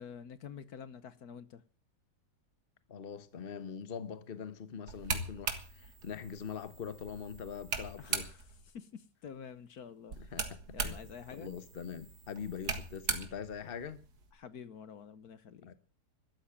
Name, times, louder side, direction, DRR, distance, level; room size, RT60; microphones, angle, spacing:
voice 1, 0.0-1.6 8.0-8.4 8.7-10.2 10.7-11.5 14.4-15.7, left 7 dB, 65° left, 1.5 m, -48 dB
voice 2, 2.9-8.3 10.2-11.0 11.3-14.0 15.6-15.7, left 7 dB, 35° left, 1.2 m, -43 dB
sound 1, 4.9-8.6 10.1-14.3, right 5 dB, 70° right, 2.3 m, -40 dB
13.0 x 13.0 x 7.2 m
omnidirectional pair, 1.8 m